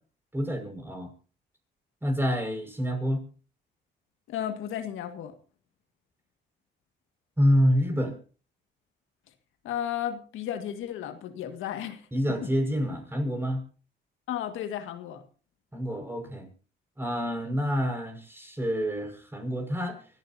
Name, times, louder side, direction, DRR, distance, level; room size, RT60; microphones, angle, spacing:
voice 1, 0.3-1.1 2.0-3.2 7.4-8.2 12.1-13.6 15.7-16.5 17.0-20.1, equal, 10° right, 5 dB, 5.6 m, -27 dB
voice 2, 4.3-5.3 9.6-12.0 14.3-15.2, left 10 dB, 90° left, 7 dB, 2.0 m, -33 dB
25.0 x 13.5 x 2.8 m, 0.38 s
cardioid pair, 90°, 20 cm